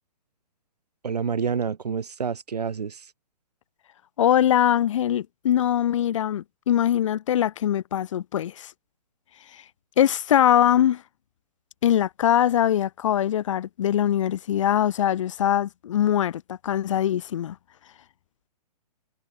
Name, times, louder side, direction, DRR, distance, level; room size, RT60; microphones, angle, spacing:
voice 1, 1.0-3.1, right 6 dB, 70° right, 1.8 m, -28 dB
voice 2, 4.2-8.7 10.0-11.0 11.8-17.6, left 10 dB, 50° left, 0.7 m, -22 dB
figure-of-eight pair, 130°, 21 cm